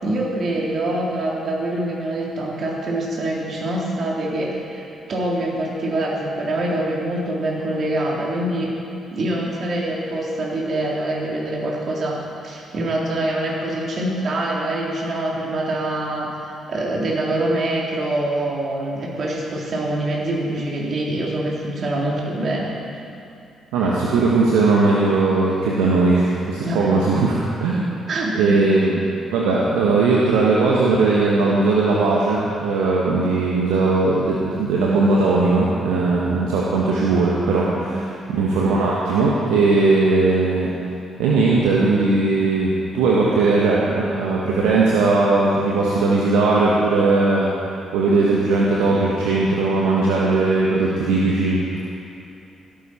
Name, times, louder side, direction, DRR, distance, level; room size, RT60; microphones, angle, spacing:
voice 1, 0.0-8.7 9.1-22.7 26.6-27.0 28.1-28.7 37.2-38.1, right 1 dB, 50° right, -4 dB, 3.4 m, -25 dB
voice 2, 23.7-27.9 28.3-29.0 29.3-38.1 38.3-40.7 41.2-47.5 47.9-51.6, right 3 dB, 70° right, -5 dB, 1.4 m, -18 dB
16.5 x 13.0 x 4.4 m, 2.7 s
figure-of-eight pair, 40°, 0 cm